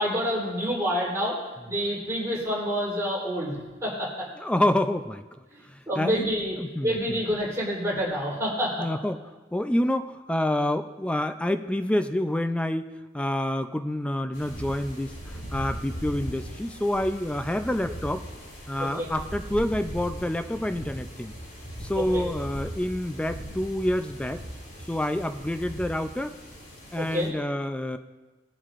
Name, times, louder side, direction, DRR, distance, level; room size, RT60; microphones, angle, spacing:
voice 1, 0.0-1.3 1.7-4.2 5.9-6.5 6.8-8.9 18.8-19.1 22.1-22.2 27.0-27.3, equal, 15° right, -7 dB, 3.6 m, -28 dB
voice 2, 4.3-5.2 5.6-6.3 6.6-7.2 8.8-9.2 9.5-18.3 18.7-21.3 21.8-24.4 24.9-26.4 26.9-28.0, left 1 dB, 5° left, 8 dB, 0.4 m, -28 dB
sound 1, 14.3-27.3, equal, 75° left, 3.1 m, -39 dB
21.0 x 7.2 x 2.5 m, 1.3 s
head